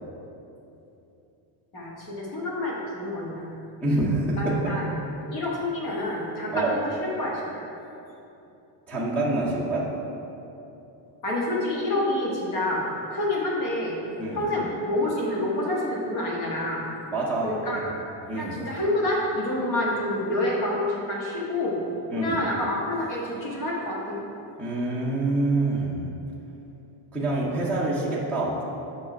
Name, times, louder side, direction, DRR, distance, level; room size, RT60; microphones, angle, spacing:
voice 1, 1.7-3.5 4.4-4.8 5.2-6.9 7.2-7.7 11.2-14.0 14.3-16.8 17.4-17.9 18.3-21.8 22.2-24.2, left 1 dB, 45° left, -4 dB, 1.5 m, -28 dB
voice 2, 3.8-4.7 6.5-6.7 8.9-9.9 14.2-14.4 17.1-17.5 18.2-18.6 22.1-22.4 24.6-26.1 27.1-28.6, right 2 dB, 5° left, -8 dB, 0.5 m, -26 dB
7.1 x 5.2 x 5.0 m, 2.9 s
cardioid pair, 175°, 49 cm